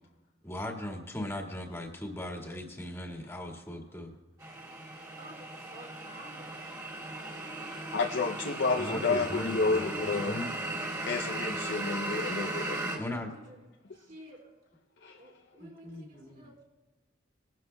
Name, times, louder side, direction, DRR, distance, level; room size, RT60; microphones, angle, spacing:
voice 1, 0.4-4.2 8.8-10.5 12.8-13.3 15.6-16.5, left 1 dB, 15° left, 0 dB, 1.8 m, -38 dB
sound 1, 4.4-13.0, right 2 dB, 20° right, 2.5 m, -37 dB
voice 2, 5.2-8.1 12.6-13.7 13.9-14.5 15.2-16.6, right 1 dB, 50° right, -2 dB, 4.6 m, -53 dB
voice 3, 7.9-10.3 11.1-12.8 15.0-15.2, left 4 dB, 65° left, 4 dB, 0.6 m, -30 dB
21.0 x 12.0 x 2.3 m, 1.2 s
head